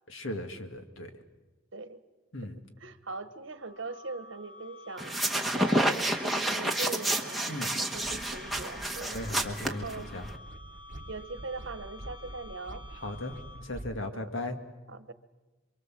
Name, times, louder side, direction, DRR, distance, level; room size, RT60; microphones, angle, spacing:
voice 1, 0.1-1.1 2.3-2.6 7.5-7.7 9.1-10.3 13.0-14.6, left 1 dB, 60° left, 6 dB, 2.1 m, -37 dB
voice 2, 2.8-9.2 9.6-10.1 11.1-12.8 14.1-14.3 14.9-15.1, right 3 dB, 60° right, 12 dB, 1.2 m, -41 dB
sound 1, 3.5-13.9, left 2 dB, 80° left, 2.7 m, -51 dB
sound 2, 5.0-10.3, right 1 dB, ahead, 1.4 m, -30 dB
sound 3, 7.9-14.0, right 1 dB, 40° right, 1.1 m, -46 dB
28.0 x 23.5 x 7.6 m, 1.1 s
head